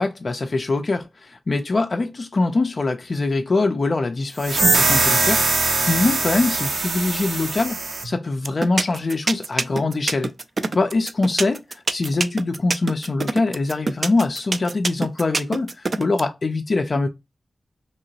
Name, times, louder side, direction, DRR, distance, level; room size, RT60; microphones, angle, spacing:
voice 1, 0.0-10.3 10.7-17.1, left 3 dB, 45° left, 0.3 m, -23 dB
sound 1, 4.4-8.1, right 3 dB, 80° right, 0.7 m, -21 dB
sound 2, 8.4-16.2, right 3 dB, 45° right, 0.3 m, -24 dB
2.9 x 2.7 x 2.8 m
wide cardioid pair, 120°, 0 cm